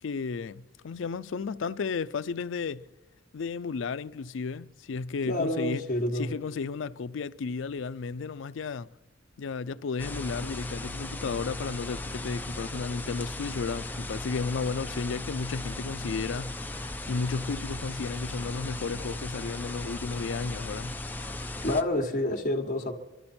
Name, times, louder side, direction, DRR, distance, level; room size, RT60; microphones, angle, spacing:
voice 1, 0.0-2.8 3.3-5.8 6.1-8.9 9.4-16.5 17.1-21.0, left 4 dB, 70° left, 0.4 m, -33 dB
voice 2, 5.3-6.3 21.2-21.3 21.6-22.9, left 1 dB, 40° left, 1.4 m, -28 dB
sound 1, 10.0-21.8, left 2 dB, 10° left, 0.6 m, -37 dB
24.5 x 12.5 x 4.3 m
head